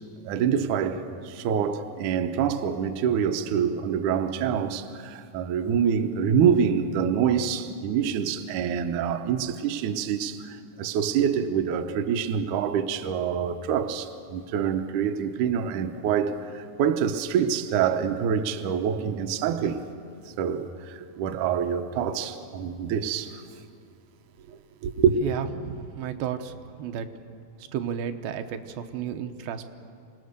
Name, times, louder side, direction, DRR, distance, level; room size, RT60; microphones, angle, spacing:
voice 1, 0.2-19.8 20.4-23.4 24.8-25.1, right 8 dB, 70° right, 2.2 m, -26 dB
voice 2, 25.2-27.1 27.6-29.6, right 8 dB, 90° right, 2.7 m, -33 dB
26.5 x 18.5 x 6.7 m
omnidirectional pair, 4.1 m